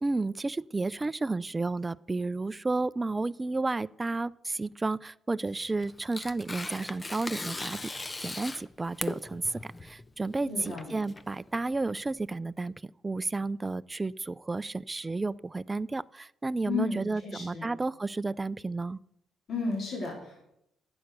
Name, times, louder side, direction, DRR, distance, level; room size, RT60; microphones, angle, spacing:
voice 1, 0.0-7.9 8.2-12.7 13.0-19.0, right 3 dB, 20° right, 18 dB, 0.3 m, -32 dB
Tearing, 5.5-12.2, left 2 dB, 20° left, 0.6 m, -39 dB
voice 2, 10.5-10.9 16.7-17.7 19.5-20.5, left 4 dB, 55° left, -3 dB, 4.0 m, -34 dB
10.5 x 7.9 x 6.6 m, 0.77 s
cardioid pair, 90°, 0 cm